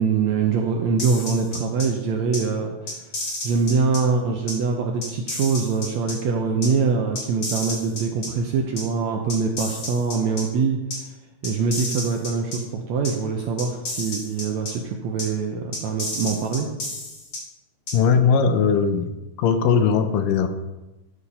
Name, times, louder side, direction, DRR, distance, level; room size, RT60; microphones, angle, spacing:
voice 1, 0.0-3.1 3.4-11.1 11.4-16.7, right 5 dB, 75° right, 2 dB, 1.6 m, -24 dB
sound 1, 1.0-1.8 2.3-2.4 2.9-4.0 4.5-4.6 5.0-6.1 6.6-6.7 7.1-8.3 8.8-8.9 9.3-10.4 10.9-11.0 11.4-12.6 13.0-13.1 13.6-14.7 15.2-15.3 15.7-17.4 17.9-18.0, left 2 dB, 40° left, 2.8 m, -31 dB
voice 2, 17.9-19.1 19.4-20.5, left 6 dB, 80° left, 8 dB, 2.2 m, -19 dB
13.0 x 5.0 x 5.4 m, 1.0 s
omnidirectional pair, 4.0 m